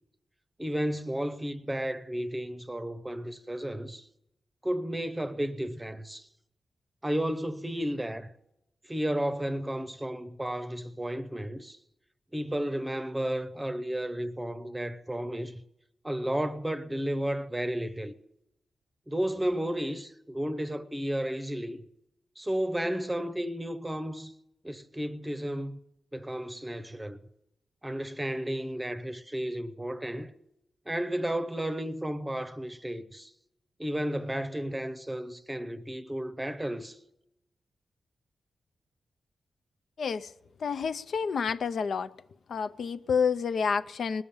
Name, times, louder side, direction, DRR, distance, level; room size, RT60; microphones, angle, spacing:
voice 1, 0.6-4.1 4.6-6.3 7.0-8.3 8.8-11.8 12.3-15.5 16.0-18.1 19.1-21.9 22.4-24.3 24.6-25.8 26.1-27.2 27.8-30.3 30.9-33.3 33.8-37.0, right 1 dB, 10° right, 0.8 m, -33 dB
voice 2, 40.0-40.3 40.6-42.1 42.5-44.2, left 6 dB, 70° left, 0.5 m, -29 dB
19.5 x 7.1 x 8.7 m
wide cardioid pair, 130°, 0 cm